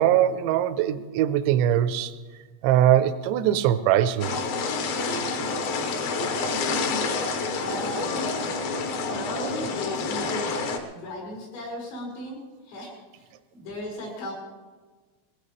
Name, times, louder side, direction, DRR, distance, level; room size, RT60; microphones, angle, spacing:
voice 1, 0.0-2.1 2.6-4.4, right 11 dB, 85° right, 11 dB, 2.6 m, -21 dB
sound 1, 4.2-10.8, left 4 dB, 70° left, 2.2 m, -28 dB
voice 2, 7.6-8.6 9.1-10.6 10.9-12.4 12.7-13.3 13.5-14.3, left 1 dB, 90° left, -2 dB, 8.0 m, -36 dB
22.0 x 16.5 x 3.2 m, 1.3 s
omnidirectional pair, 5.9 m